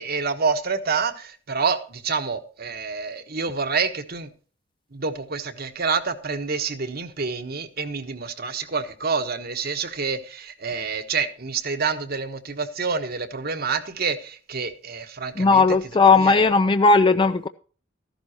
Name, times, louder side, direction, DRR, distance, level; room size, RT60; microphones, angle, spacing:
voice 1, 0.0-4.3 4.9-15.8 16.1-16.5, right 5 dB, 55° right, 1.3 m, -27 dB
voice 2, 15.4-17.5, left 4 dB, 25° left, 0.4 m, -17 dB
14.0 x 11.5 x 2.9 m
head